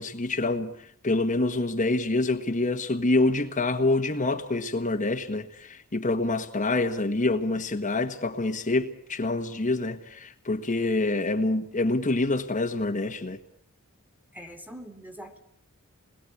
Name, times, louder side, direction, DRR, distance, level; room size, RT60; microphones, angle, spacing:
voice 1, 0.0-13.4, left 2 dB, 35° left, 1.4 m, -26 dB
voice 2, 14.3-15.4, equal, 10° right, 2.6 m, -43 dB
29.0 x 21.0 x 8.4 m
head